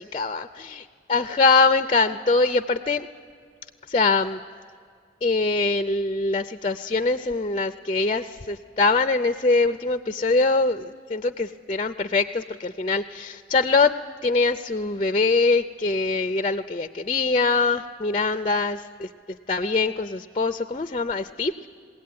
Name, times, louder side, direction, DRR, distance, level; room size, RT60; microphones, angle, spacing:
voice 1, 0.0-3.1 3.9-4.4 5.2-13.9 14.2-19.1 19.5-21.5, left 3 dB, 30° left, 11 dB, 0.5 m, -23 dB
21.5 x 17.0 x 9.5 m, 2.2 s
head